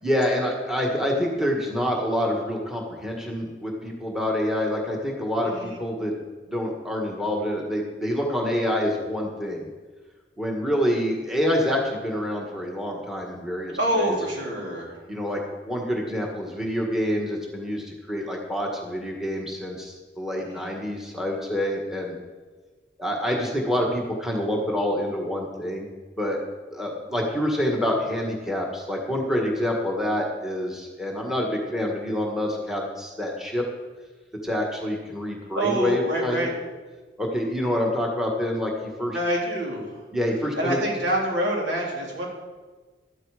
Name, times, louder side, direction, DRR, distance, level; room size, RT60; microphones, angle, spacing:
voice 1, 0.0-6.1 6.5-9.7 10.4-14.1 15.1-22.2 23.0-25.9 26.2-26.4 26.7-33.6 34.4-36.5 37.2-38.7 39.0-39.2 40.1-40.8, equal, 5° right, 0 dB, 1.7 m, -27 dB
voice 2, 5.4-5.8 13.8-15.1 20.4-20.7 35.5-36.5 39.1-40.1 40.6-42.3, right 1 dB, 80° right, -3 dB, 3.7 m, -26 dB
12.5 x 12.0 x 5.0 m, 1.3 s
head